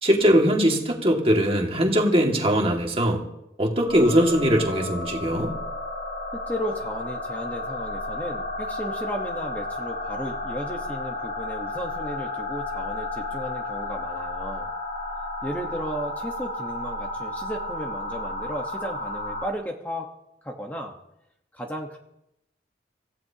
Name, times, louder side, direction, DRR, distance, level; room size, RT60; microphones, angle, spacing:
voice 1, 0.0-3.2 3.6-5.5, equal, 30° right, 1 dB, 2.0 m, -21 dB
sound 1, 3.9-19.5, left 2 dB, 80° left, 3.4 m, -32 dB
voice 2, 6.5-14.7 15.4-20.1 20.4-20.9 21.5-22.0, equal, 10° left, 1 dB, 1.1 m, -34 dB
26.0 x 15.0 x 2.9 m, 0.84 s
head